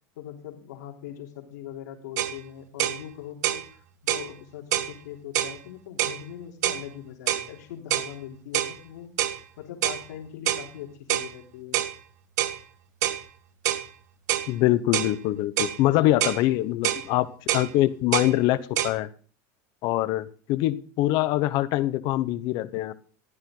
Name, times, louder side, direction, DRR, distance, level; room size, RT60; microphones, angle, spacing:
voice 1, 0.1-9.2 9.6-11.8, left 10 dB, 90° left, 1 dB, 3.4 m, -41 dB
sound 1, 2.2-2.4 2.8-3.0 3.4-3.6 4.1-4.3 4.7-4.9 5.3-5.6 6.0-6.2 6.6-6.8 7.3-7.5 7.9-8.1 8.5-8.7 9.2-9.4 9.8-10.0 10.5-10.7 11.1-11.3 11.7-11.9 12.4-12.6 13.0-13.2 13.6-13.9 14.3-14.5 14.9-15.1 15.6-15.8 16.2-16.4 16.8-17.1 17.5-17.7 18.1-18.3 18.8-18.9, right 13 dB, 85° right, 1.5 m, -26 dB
voice 2, 14.5-17.3 17.5-19.1 19.8-22.9, left 15 dB, 50° left, 14 dB, 0.9 m, -24 dB
14.5 x 13.0 x 3.9 m, 0.41 s
supercardioid pair, 150°, 9 cm